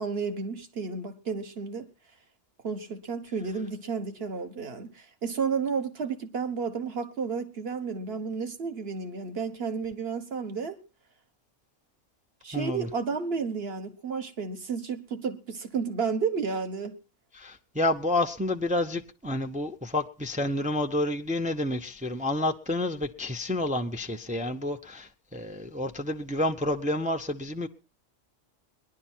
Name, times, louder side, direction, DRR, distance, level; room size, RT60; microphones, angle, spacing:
voice 1, 0.0-1.9 2.6-10.8 12.4-17.0, right 5 dB, 55° right, 1.4 m, -32 dB
voice 2, 12.5-12.9 17.3-27.7, left 1 dB, 10° right, 0.4 m, -29 dB
19.0 x 11.0 x 4.4 m
omnidirectional pair, 1.3 m